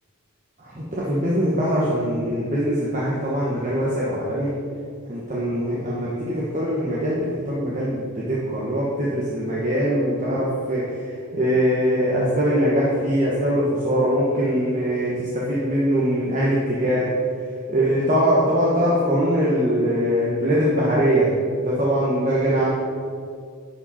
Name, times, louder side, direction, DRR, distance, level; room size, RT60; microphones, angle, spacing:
voice 1, 0.6-4.5 5.1-10.8 11.3-17.1 17.7-21.3 21.6-22.7, equal, 35° right, -7 dB, 1.2 m, -22 dB
11.5 x 5.1 x 4.2 m, 2.2 s
head